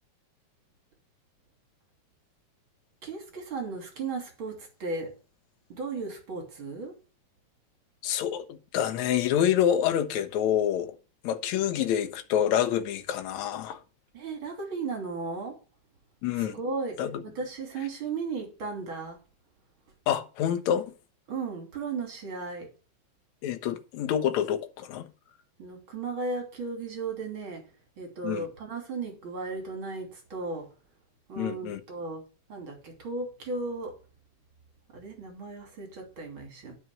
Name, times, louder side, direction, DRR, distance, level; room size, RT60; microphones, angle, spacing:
voice 1, 3.0-5.1 5.7-7.0 14.1-15.6 16.4-19.2 21.3-22.7 25.6-30.7 31.3-32.2 32.5-34.0 34.9-36.8, right 3 dB, 45° right, 3.5 m, -35 dB
voice 2, 8.0-10.9 11.2-13.8 16.2-16.5 17.0-17.1 20.1-20.8 23.4-25.1 28.2-28.5 31.4-31.8, left 10 dB, 75° left, 2.3 m, -27 dB
9.5 x 6.2 x 5.9 m
omnidirectional pair, 3.3 m